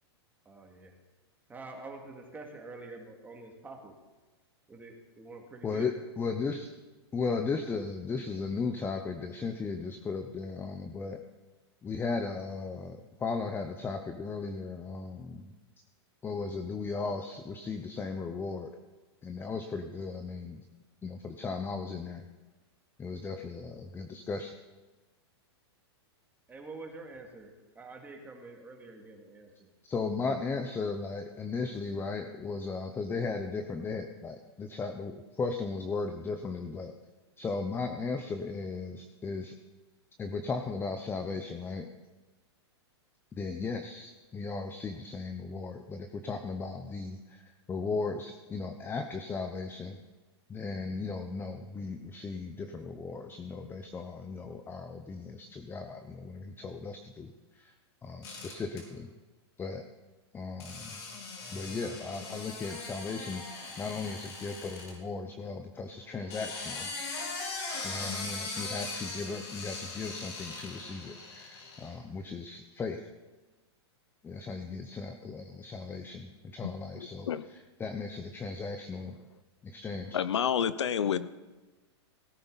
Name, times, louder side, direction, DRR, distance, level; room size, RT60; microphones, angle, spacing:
voice 1, 0.5-1.0 1.5-4.0 4.7-5.9 26.5-29.7, right 3 dB, 10° right, 1 dB, 2.3 m, -47 dB
voice 2, 5.6-6.7 7.1-11.2 11.8-15.5 16.2-18.7 19.2-20.6 21.0-22.3 23.0-24.5 29.8-36.9 37.4-39.6 40.2-41.9 43.3-50.0 50.5-57.7 58.0-59.1 59.6-59.8 60.3-61.0 61.5-66.9 67.8-73.0 74.2-79.2 79.6-80.2, left 4 dB, 15° left, 6 dB, 0.7 m, -36 dB
sound 1, 58.2-58.8 60.6-64.9 66.1-71.9, left 3 dB, 75° left, 4.6 m, -40 dB
voice 3, 77.0-77.4 80.1-81.3, left 8 dB, 90° left, 15 dB, 0.6 m, -29 dB
17.5 x 10.0 x 4.1 m, 1.2 s
hypercardioid pair, 130°, 14 cm